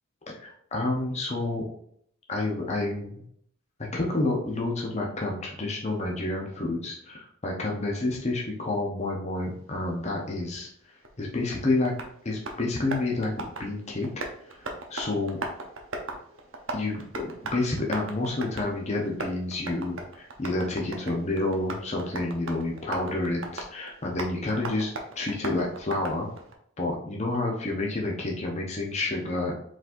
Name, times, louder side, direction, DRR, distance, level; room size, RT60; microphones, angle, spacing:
voice 1, 0.4-1.6 2.3-3.2 3.9-10.7 11.2-11.9 12.2-13.3 13.6-14.1 14.5-15.4 16.7-26.3 26.8-29.5, left 2 dB, 30° left, -1 dB, 0.8 m, -29 dB
Tap, 11.0-26.5, right 2 dB, 60° right, 0.8 m, -39 dB
4.9 x 4.0 x 2.6 m, 0.67 s
head